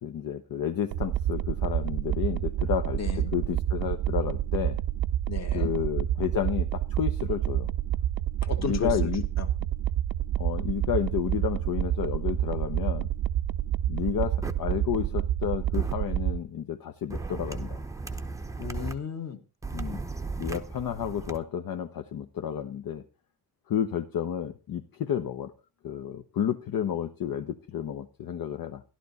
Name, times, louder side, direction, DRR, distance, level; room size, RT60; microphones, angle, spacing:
voice 1, 0.0-3.0 3.3-4.8 5.5-7.7 8.6-9.2 10.4-13.1 13.9-17.8 19.7-20.0 20.4-23.0 23.7-25.5 25.8-28.8, left 9 dB, 55° left, 7 dB, 1.0 m, -31 dB
sound 1, 0.9-16.4, right 11 dB, 55° right, 0.6 m, -28 dB
voice 2, 3.0-3.3 5.3-5.7 8.4-9.1 9.4-9.5 18.6-19.4, left 7 dB, 40° left, 7 dB, 1.8 m, -34 dB
sound 2, 14.4-14.5 15.7-15.9 17.1-18.9 19.6-21.4, right 3 dB, 10° right, 0.7 m, -35 dB
14.5 x 12.0 x 4.2 m, 0.31 s
wide cardioid pair, 175°, 40 cm